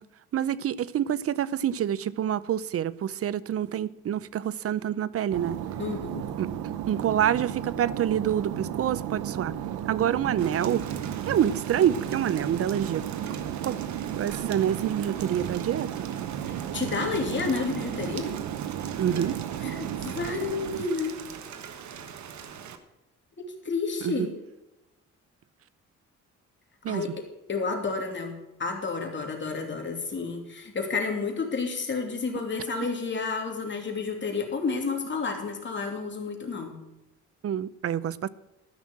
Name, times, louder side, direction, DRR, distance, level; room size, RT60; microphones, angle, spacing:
voice 1, 0.3-5.6 6.4-6.5 6.9-9.5 9.9-10.8 11.3-13.0 13.6-13.8 14.2-15.9 19.0-19.4 24.0-24.3 26.8-27.0 37.4-38.3, right 10 dB, 50° right, 0.6 m, -27 dB
sound 1, 5.3-20.8, right 10 dB, 85° right, 0.8 m, -34 dB
voice 2, 5.8-6.3 16.5-18.3 19.6-21.2 23.4-24.3 26.9-36.7, left 4 dB, 40° left, 2.8 m, -31 dB
Rain, 10.4-22.8, right 7 dB, 70° right, 1.3 m, -42 dB
13.5 x 6.3 x 7.4 m
cardioid pair, 90°, 30 cm